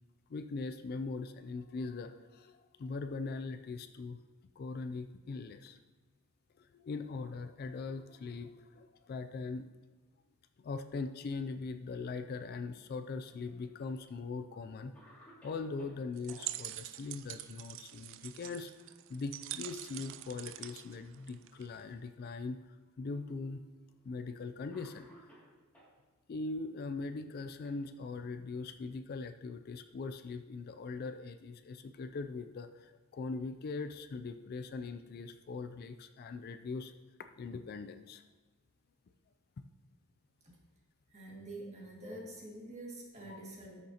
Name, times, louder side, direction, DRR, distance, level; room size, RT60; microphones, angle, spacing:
voice 1, 0.3-4.2 4.6-5.8 6.6-9.7 10.6-15.0 15.4-18.7 19.1-23.7 24.0-25.1 26.3-36.9 37.4-38.2 39.6-39.7 43.3-43.4, left 4 dB, 45° left, 8 dB, 0.3 m, -41 dB
Cough, 13.1-14.0 14.5-14.6 14.9-16.5 18.3-18.8 19.1-19.2 20.0-20.7 21.5-21.6 22.7-22.8 23.9-24.1 24.7-26.0 26.9-28.4, equal, 5° left, 2.3 m, -61 dB
sound 1, 16.2-21.8, right 15 dB, 60° right, 0.3 m, -45 dB
voice 2, 41.1-43.8, right 1 dB, 30° right, -3 dB, 1.9 m, -46 dB
13.0 x 6.5 x 2.8 m, 1.2 s
head